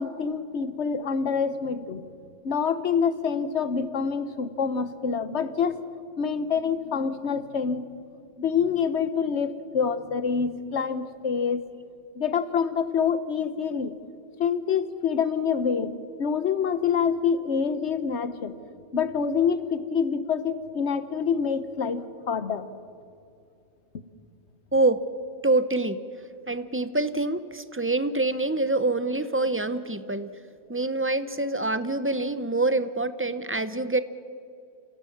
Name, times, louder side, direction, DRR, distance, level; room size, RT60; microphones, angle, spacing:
voice 1, 0.0-2.0 2.4-5.8 6.2-7.9 8.4-11.6 12.1-13.9 14.4-15.9 16.2-18.5 18.9-22.7, left 6 dB, 85° left, 13 dB, 1.3 m, -26 dB
voice 2, 24.7-25.0 25.4-26.0 26.5-30.4 30.7-34.0, right 2 dB, 15° right, 13 dB, 0.6 m, -25 dB
27.5 x 17.0 x 7.2 m, 2.5 s
omnidirectional pair, 1.1 m